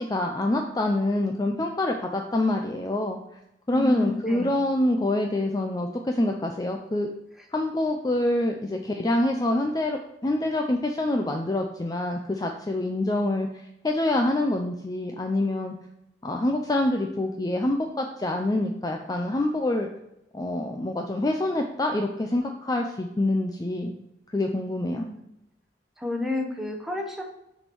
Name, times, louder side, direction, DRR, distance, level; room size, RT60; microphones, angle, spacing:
voice 1, 0.0-3.2 3.7-7.1 7.5-13.5 13.8-15.7 16.2-19.9 20.3-23.9 24.3-25.0, left 1 dB, 20° left, 3 dB, 0.4 m, -26 dB
voice 2, 3.7-4.5 24.9-25.3 26.0-27.2, left 2 dB, ahead, 1 dB, 1.0 m, -31 dB
6.5 x 4.3 x 4.6 m, 0.85 s
head